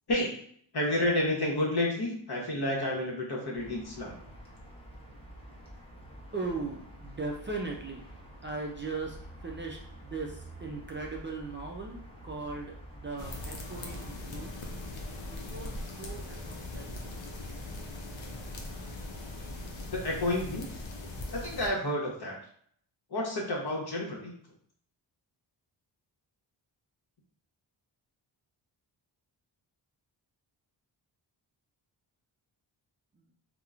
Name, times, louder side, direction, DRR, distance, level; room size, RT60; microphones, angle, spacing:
voice 1, 0.7-4.1 19.9-20.7 21.3-22.4 23.1-24.3, left 1 dB, 55° left, -1 dB, 0.9 m, -30 dB
sound 1, 3.5-14.1, right 1 dB, 10° left, 0.8 m, -48 dB
voice 2, 6.3-14.5 15.4-16.9 33.1-33.3, right 3 dB, 25° right, -1 dB, 0.4 m, -39 dB
sound 2, 13.2-21.7, left 2 dB, 75° left, 0.6 m, -40 dB
2.9 x 2.1 x 2.4 m, 0.62 s
cardioid pair, 65°, 46 cm